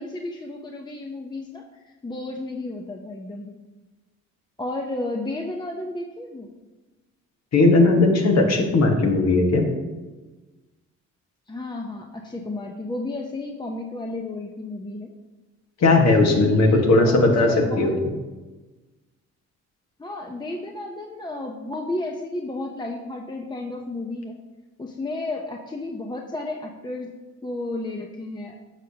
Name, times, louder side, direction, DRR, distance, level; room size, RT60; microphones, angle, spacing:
voice 1, 0.0-3.6 4.6-6.5 11.5-15.1 16.0-18.0 20.0-24.4 24.8-27.2 27.4-28.6, left 2 dB, 15° left, 1 dB, 0.7 m, -32 dB
voice 2, 7.5-9.6 15.8-18.1, left 2 dB, 60° left, 2 dB, 1.5 m, -18 dB
11.0 x 6.5 x 2.8 m, 1.2 s
cardioid pair, 90°, 30 cm